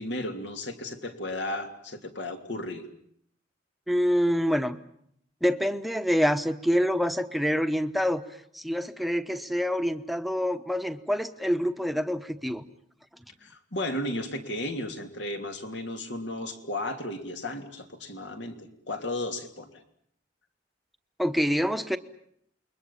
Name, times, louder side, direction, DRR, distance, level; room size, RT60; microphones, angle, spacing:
voice 1, 0.0-2.8 13.4-19.7, left 1 dB, 75° left, 5 dB, 3.0 m, -34 dB
voice 2, 3.9-4.8 5.4-8.2 8.5-12.6 21.2-22.0, equal, ahead, 9 dB, 0.9 m, -26 dB
28.5 x 22.5 x 7.2 m, 0.69 s
head